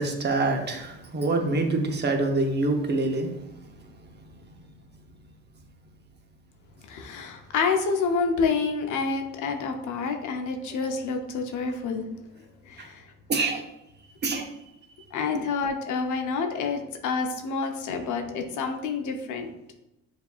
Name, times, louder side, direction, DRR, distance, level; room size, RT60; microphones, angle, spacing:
voice 1, 0.0-3.3 12.8-12.9 13.3-13.6 14.2-14.5 15.3-15.4, right 2 dB, 35° right, 3 dB, 0.8 m, -25 dB
voice 2, 6.9-12.1 12.7-13.0 15.1-19.5, left 5 dB, 80° left, 4 dB, 0.6 m, -28 dB
6.5 x 2.7 x 2.4 m, 0.90 s
cardioid pair, 90°, 30 cm